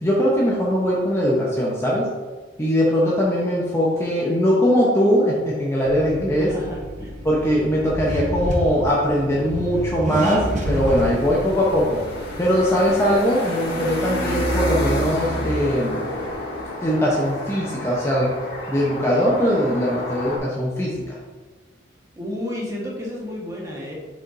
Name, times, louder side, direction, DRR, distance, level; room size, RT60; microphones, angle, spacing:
voice 1, 0.0-2.1 2.6-6.5 7.2-12.0 12.4-16.1 16.8-18.3 18.7-21.2, equal, 15° left, -5 dB, 0.8 m, -21 dB
Accelerating revving vroom, 5.9-13.2, equal, 40° right, 0.8 m, -30 dB
voice 2, 6.4-7.1 22.2-23.9, left 1 dB, 15° right, -4 dB, 1.3 m, -31 dB
sound 1, 10.1-20.4, left 1 dB, 55° left, 1.6 m, -29 dB
7.0 x 5.4 x 2.6 m, 1.4 s
head